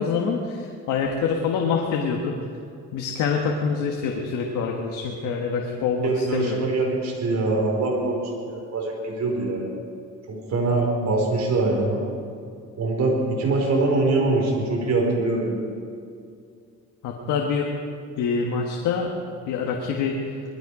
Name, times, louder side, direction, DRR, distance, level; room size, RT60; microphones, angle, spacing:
voice 1, 0.0-2.4 2.9-6.7 17.0-17.7 18.2-19.1 19.5-20.2, left 5 dB, 90° left, 1 dB, 1.5 m, -25 dB
voice 2, 6.0-9.7 10.3-12.0 12.8-15.6, right 2 dB, 60° right, -1 dB, 4.8 m, -23 dB
20.0 x 14.0 x 4.9 m, 2.4 s
cardioid pair, 90°, 30 cm